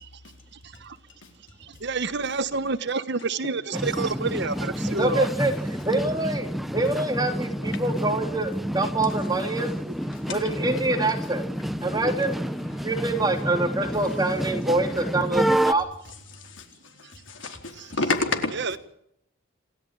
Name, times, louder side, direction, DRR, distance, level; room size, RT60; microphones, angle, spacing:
voice 1, 0.6-1.0 1.6-5.3 17.8-17.9 18.5-18.8, right 4 dB, 55° right, 1.3 m, -29 dB
sound 1, 3.7-15.7, equal, ahead, 0.9 m, -29 dB
voice 2, 5.0-5.5 5.8-9.7 10.3-11.4 11.8-12.4 12.8-15.9, right 2 dB, 20° right, 3.3 m, -25 dB
voice 3, 12.6-13.3 13.9-14.1 16.3-18.6, left 3 dB, 60° left, 4.3 m, -31 dB
28.0 x 13.0 x 9.0 m
head